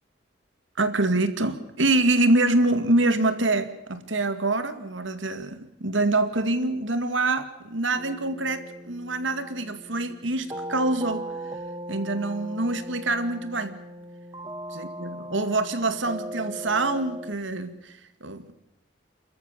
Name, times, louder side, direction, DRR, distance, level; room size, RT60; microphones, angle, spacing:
voice 1, 0.8-11.3 11.9-13.8 14.7-18.5, right 2 dB, 85° right, 10 dB, 2.3 m, -25 dB
sound 1, 8.0-17.3, right 1 dB, 20° right, 1.2 m, -39 dB
29.5 x 14.0 x 6.9 m, 0.96 s
head